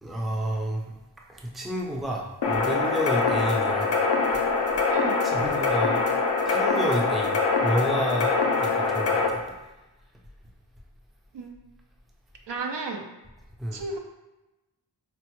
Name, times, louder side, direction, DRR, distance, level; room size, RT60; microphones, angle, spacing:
voice 1, 0.0-0.9 1.3-3.9 4.3-4.4 5.2-6.1 6.4-9.4 13.6-13.8, right 1 dB, ahead, -1 dB, 0.4 m, -30 dB
sound 1, 2.4-9.3, left 4 dB, 70° left, 0.6 m, -24 dB
voice 2, 11.3-11.7 12.5-13.0 13.7-14.0, right 3 dB, 75° right, 2 dB, 0.6 m, -33 dB
4.4 x 2.1 x 3.0 m, 1.0 s
wide cardioid pair, 80°, 43 cm